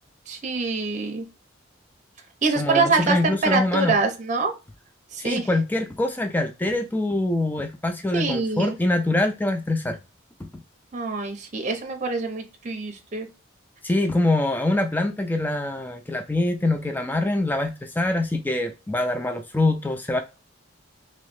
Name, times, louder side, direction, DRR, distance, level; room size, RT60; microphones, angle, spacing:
voice 1, 0.3-1.3 2.4-4.5 5.1-5.5 8.1-8.8 10.9-13.3, right 4 dB, 35° right, 4 dB, 0.7 m, -25 dB
voice 2, 2.6-4.0 5.2-10.0 10.4-10.5 13.8-20.2, left 2 dB, 10° left, 6 dB, 0.3 m, -24 dB
3.0 x 2.7 x 3.1 m, 0.28 s
head